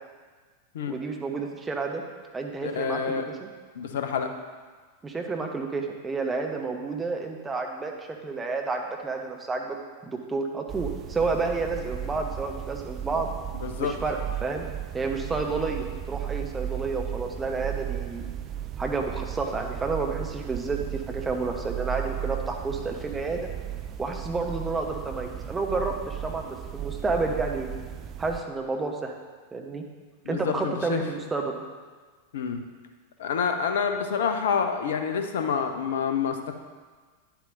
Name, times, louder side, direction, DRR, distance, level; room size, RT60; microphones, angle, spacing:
voice 1, 0.9-2.0 2.3-3.5 5.0-9.8 10.0-13.3 13.8-14.7 14.9-18.3 18.8-23.4 24.0-27.7 28.2-29.1 29.5-29.8 30.3-31.6, right 3 dB, 15° right, 2 dB, 0.9 m, -30 dB
voice 2, 2.6-3.3 3.8-4.3 13.5-13.9 30.2-31.0 32.3-32.6 33.2-36.5, left 6 dB, 60° left, 6 dB, 0.7 m, -28 dB
sound 1, 10.7-28.4, right 10 dB, 30° right, 0.5 m, -35 dB
10.0 x 7.3 x 2.6 m, 1.5 s
figure-of-eight pair, 90°, 0 cm